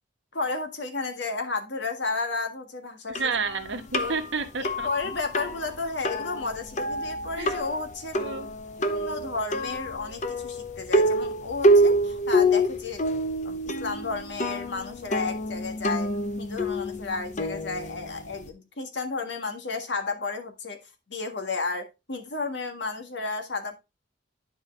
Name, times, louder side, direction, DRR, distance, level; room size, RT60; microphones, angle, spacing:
voice 1, 0.3-3.2 3.9-4.1 4.6-8.2 8.8-13.1 13.4-16.1 16.4-23.7, left 3 dB, 65° left, 5 dB, 1.6 m, -32 dB
sound 1, 3.1-18.5, equal, 40° left, 0.8 m, -27 dB
voice 2, 3.1-4.9 7.4-7.6 8.2-8.5, right 4 dB, 75° right, 5 dB, 1.4 m, -30 dB
10.0 x 4.8 x 3.3 m, 0.24 s
head